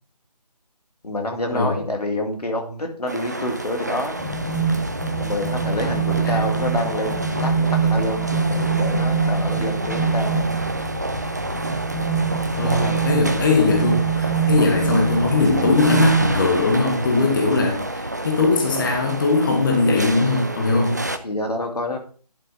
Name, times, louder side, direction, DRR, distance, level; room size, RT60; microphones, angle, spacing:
voice 1, 1.0-4.2 5.2-10.4 12.6-13.1 20.8-22.0, left 1 dB, 70° left, 3 dB, 2.3 m, -28 dB
sound 1, 3.1-21.2, right 1 dB, 25° right, 0.4 m, -29 dB
sound 2, 4.2-16.3, right 5 dB, 10° left, 1.3 m, -24 dB
voice 2, 12.6-21.0, left 3 dB, 30° left, 1 dB, 1.3 m, -20 dB
11.5 x 7.4 x 2.7 m, 0.41 s
figure-of-eight pair, 160°, 21 cm